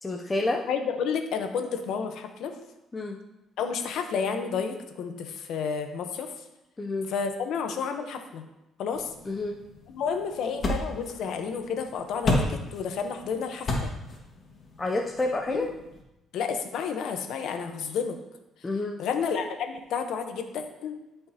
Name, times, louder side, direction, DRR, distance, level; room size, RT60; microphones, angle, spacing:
voice 1, 0.0-0.6 2.9-3.2 6.8-7.1 9.3-9.5 14.8-15.7 18.6-19.0, left 2 dB, 20° left, 1 dB, 0.6 m, -28 dB
voice 2, 0.7-2.5 3.6-6.3 7.1-8.4 8.8-9.1 9.9-13.9 15.5-15.7 16.3-18.2 19.0-20.9, left 6 dB, 75° left, 6 dB, 1.0 m, -31 dB
sound 1, 8.9-16.0, left 2 dB, 40° left, 1.9 m, -33 dB
13.5 x 5.6 x 2.9 m, 0.94 s
cardioid pair, 115°, 0 cm